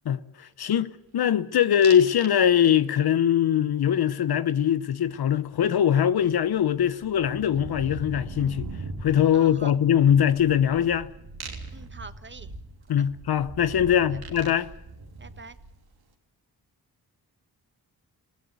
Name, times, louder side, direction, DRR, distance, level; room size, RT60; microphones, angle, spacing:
voice 1, 0.0-8.7 9.0-11.1 12.9-14.7, left 9 dB, 75° left, 0.8 m, -22 dB
sound 1, 1.8-2.3 2.6-3.1 5.6-5.7 5.9-15.9, right 3 dB, 75° right, 3.3 m, -41 dB
voice 2, 9.3-9.7 11.7-12.5 13.0-13.1 13.9-14.2 15.2-15.6, right 4 dB, 30° right, 1.3 m, -45 dB
21.0 x 16.5 x 9.4 m
cardioid pair, 65°, 38 cm